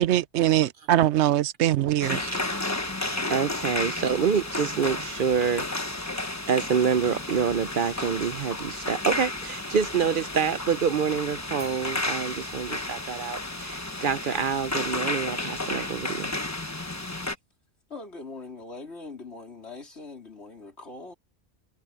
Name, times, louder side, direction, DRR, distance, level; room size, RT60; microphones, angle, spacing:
voice 1, 0.0-2.2, right 13 dB, 85° right, 0.9 m, -22 dB
sound 1, 2.0-17.3, left 2 dB, 15° left, 1.1 m, -32 dB
voice 2, 3.3-5.7 6.5-16.3, right 6 dB, 55° right, 0.8 m, -27 dB
Bell, 11.6-13.9, right 3 dB, 40° right, 7.8 m, -51 dB
voice 3, 17.9-21.1, left 3 dB, 75° left, 4.3 m, -41 dB
omnidirectional pair, 1.1 m